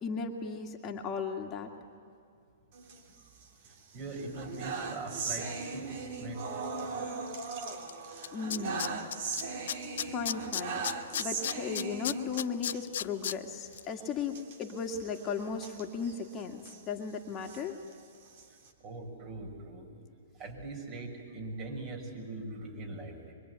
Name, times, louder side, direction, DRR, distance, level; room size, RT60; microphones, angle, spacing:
voice 1, 0.0-1.7 8.3-9.0 10.0-10.8 11.2-17.8, left 5 dB, 30° left, 2 dB, 2.1 m, -36 dB
sound 1, 2.7-3.7 4.1-12.9 13.2-13.4 13.6-13.8 14.3-16.8 17.3-18.7, right 4 dB, 55° right, 3.3 m, -39 dB
voice 2, 3.9-7.0 12.6-12.7 18.8-19.9 20.4-23.3, right 2 dB, 35° right, 2 dB, 6.7 m, -42 dB
Tools, 7.9-8.0 8.2-9.4 9.7-13.3 13.7-13.8, left 9 dB, 65° left, 0.7 m, -33 dB
24.0 x 24.0 x 9.7 m, 2.5 s
hypercardioid pair, 125°, 0 cm